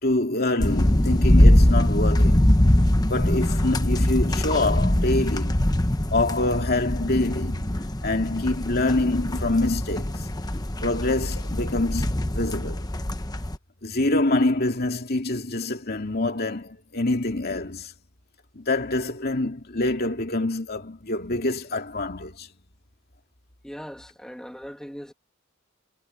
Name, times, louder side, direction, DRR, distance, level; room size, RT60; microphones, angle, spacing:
voice 1, 0.0-2.5 3.0-5.6 6.1-7.7 8.0-10.3 10.8-12.9 13.8-17.9 18.5-22.5, left 2 dB, 45° left, 2.6 m, -26 dB
sound 1, 0.6-13.6, left 1 dB, 20° left, 1.0 m, -22 dB
voice 2, 23.6-25.1, equal, 5° left, 2.7 m, -39 dB
head